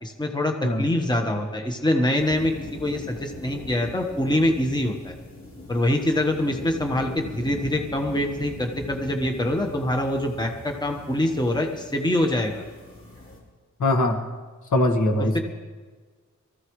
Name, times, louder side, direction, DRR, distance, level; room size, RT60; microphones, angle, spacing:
voice 1, 0.0-5.1 5.7-12.7 15.3-15.4, left 1 dB, 15° left, 3 dB, 1.3 m, -24 dB
sound 1, 2.2-13.4, left 1 dB, 50° left, 4.7 m, -40 dB
voice 2, 13.8-14.2 14.7-15.4, left 1 dB, 80° left, 3 dB, 1.8 m, -21 dB
23.5 x 15.0 x 3.2 m, 1.4 s
wide cardioid pair, 165°, 30 cm